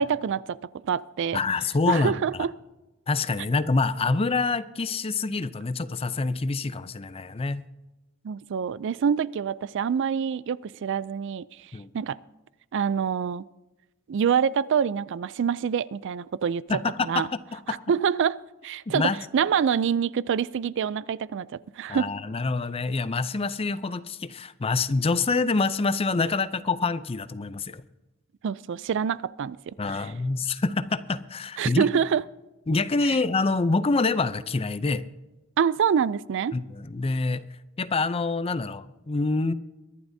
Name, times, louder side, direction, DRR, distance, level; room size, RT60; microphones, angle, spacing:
voice 1, 0.0-1.4 1.9-2.5 8.2-11.5 11.9-12.2 12.7-13.4 14.1-16.6 17.0-17.3 17.9-21.5 21.8-22.1 28.4-30.0 31.6-32.2 35.6-36.5, right 7 dB, 60° right, 0.4 m, -26 dB
voice 2, 1.3-2.2 3.1-7.6 11.7-11.9 16.7-17.8 18.9-19.2 21.9-27.8 29.8-31.9 32.7-35.0 36.5-37.4 37.8-39.5, left 3 dB, 25° left, 0.5 m, -26 dB
23.0 x 11.5 x 2.7 m
head